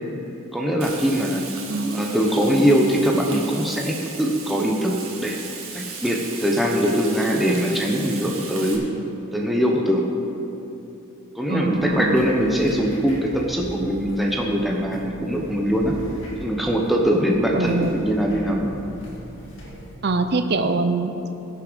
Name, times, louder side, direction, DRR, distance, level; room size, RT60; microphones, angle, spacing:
voice 1, 0.5-1.5 1.9-5.4 5.7-8.8 9.3-10.1 11.4-16.0 16.4-18.7, equal, ahead, -1 dB, 0.9 m, -22 dB
Frying (food), 0.8-8.8, right 5 dB, 75° right, 1.8 m, -36 dB
voice 2, 1.7-2.2 11.5-12.3 17.5-18.0 20.0-21.1, right 3 dB, 50° right, 8 dB, 0.6 m, -23 dB
sound 1, 11.7-19.9, right 1 dB, 60° left, 2.3 m, -39 dB
16.0 x 6.9 x 5.3 m, 2.9 s
head